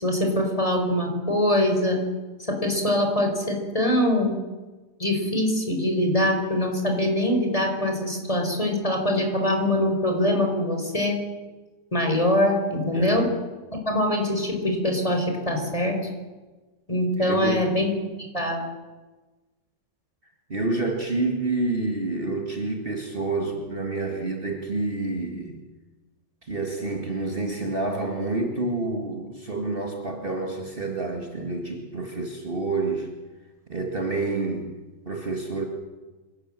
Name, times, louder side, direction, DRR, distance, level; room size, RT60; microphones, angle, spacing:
voice 1, 0.0-2.0 2.5-4.3 5.0-11.2 11.9-13.3 13.7-16.0 16.9-17.9 18.3-18.6, left 1 dB, 20° left, 3 dB, 4.7 m, -23 dB
voice 2, 12.9-13.3 17.2-17.7 20.5-25.6 26.5-33.1 33.7-34.7 35.1-35.7, right 2 dB, 35° right, 2 dB, 2.1 m, -28 dB
26.0 x 17.5 x 7.6 m, 1.2 s
omnidirectional pair, 1.7 m